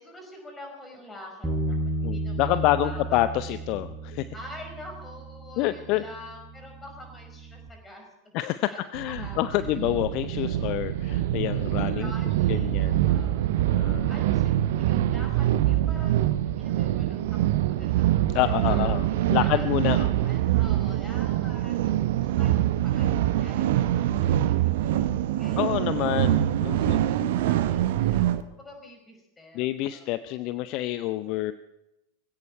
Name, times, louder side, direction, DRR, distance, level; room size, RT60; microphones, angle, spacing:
voice 1, 0.0-3.2 4.3-8.3 8.7-8.8 9.1-9.7 11.9-17.2 17.8-18.2 18.4-19.6 20.2-25.1 25.4-26.0 26.6-30.8, left 1 dB, 10° left, 2 dB, 5.2 m, -47 dB
Bass guitar, 1.4-7.7, right 1 dB, 5° right, 3.9 m, -34 dB
voice 2, 2.0-4.3 5.6-6.0 8.3-12.1 12.5-13.0 13.7-14.1 18.3-20.3 25.6-27.3 29.5-31.5, left 15 dB, 40° left, 14 dB, 0.5 m, -28 dB
sound 1, 8.9-28.4, right 13 dB, 55° right, 0.8 m, -24 dB
19.5 x 16.5 x 4.5 m, 0.93 s
figure-of-eight pair, 90°, 0 cm